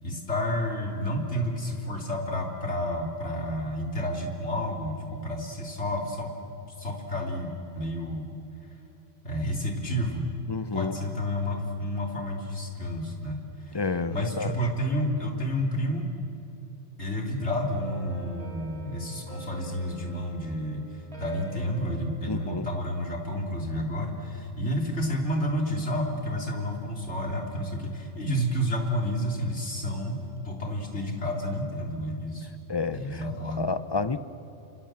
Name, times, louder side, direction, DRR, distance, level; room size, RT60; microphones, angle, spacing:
voice 1, 0.0-6.3 6.8-8.3 9.2-10.3 10.7-13.8 14.1-16.1 17.0-32.5 32.9-33.7, equal, 70° left, 1 dB, 3.6 m, -30 dB
voice 2, 10.5-11.0 13.7-14.5 22.3-22.7 32.7-33.2 33.6-34.2, left 4 dB, 25° left, 12 dB, 0.7 m, -30 dB
sound 1, 17.6-23.2, right 3 dB, 25° right, 3.5 m, -47 dB
30.0 x 26.5 x 7.6 m, 2.9 s
omnidirectional pair, 1.2 m